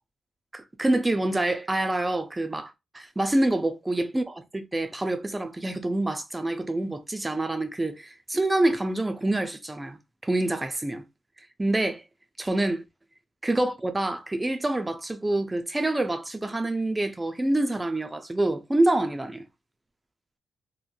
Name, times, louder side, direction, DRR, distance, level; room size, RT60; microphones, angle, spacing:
voice 1, 0.5-11.1 11.6-12.0 12.4-12.8 13.4-19.4, right 1 dB, 10° right, 0.3 m, -26 dB
2.8 x 2.5 x 2.2 m
wide cardioid pair, 170°, 0 cm